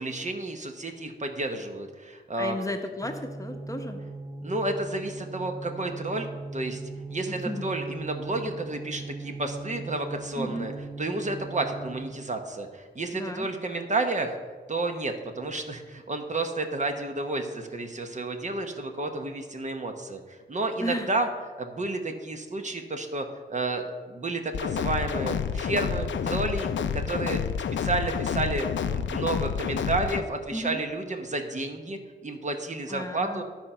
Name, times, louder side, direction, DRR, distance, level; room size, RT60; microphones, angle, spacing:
voice 1, 0.0-2.6 4.4-6.8 7.1-10.7 11.0-14.4 14.7-21.3 21.6-26.7 26.9-27.4 27.8-33.4, right 2 dB, 40° right, 5 dB, 1.0 m, -31 dB
voice 2, 2.4-4.0 7.3-7.7 10.3-10.7 13.1-13.5 20.8-21.1 30.5-30.8 32.9-33.4, left 1 dB, 15° left, 4 dB, 0.9 m, -34 dB
sound 1, 3.0-12.4, right 3 dB, 15° right, 0.5 m, -39 dB
sound 2, 24.5-30.2, left 7 dB, 80° left, 0.5 m, -29 dB
12.0 x 4.4 x 5.6 m, 1.4 s
cardioid pair, 70°, 19 cm